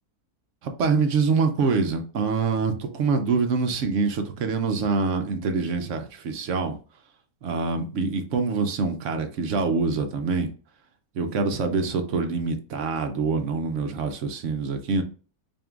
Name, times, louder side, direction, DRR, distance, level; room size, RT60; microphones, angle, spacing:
voice 1, 0.6-6.8 7.4-10.5 11.1-15.0, right 4 dB, 65° right, 0.9 m, -25 dB
5.2 x 2.6 x 2.4 m
omnidirectional pair, 1.6 m